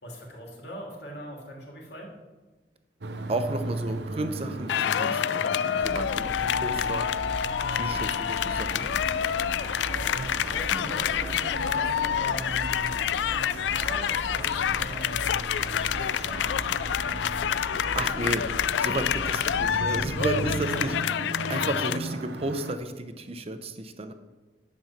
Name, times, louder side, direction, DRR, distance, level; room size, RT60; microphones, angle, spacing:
voice 1, 0.0-2.1 9.7-15.5 15.9-16.4 20.7-20.9, equal, 70° left, -1 dB, 2.8 m, -41 dB
sound 1, 3.0-22.8, right 2 dB, 70° right, 0.7 m, -37 dB
voice 2, 3.3-7.1 7.7-8.9 17.9-20.9 21.5-24.1, right 2 dB, 35° right, 9 dB, 0.8 m, -33 dB
sound 2, 4.7-22.0, left 9 dB, 90° left, 0.3 m, -28 dB
sound 3, 5.8-20.6, equal, 15° right, 1.5 m, -40 dB
10.5 x 5.5 x 7.3 m, 1.2 s
head